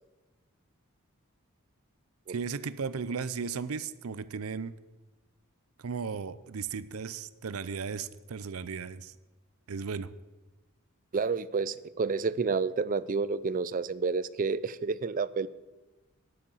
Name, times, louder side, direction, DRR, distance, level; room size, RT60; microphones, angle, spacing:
voice 1, 2.3-4.8 5.8-9.1 9.7-10.1, right 5 dB, 85° right, 16 dB, 0.6 m, -36 dB
voice 2, 11.1-15.5, right 4 dB, 40° right, 18 dB, 0.4 m, -30 dB
13.0 x 10.0 x 5.6 m, 1.1 s
head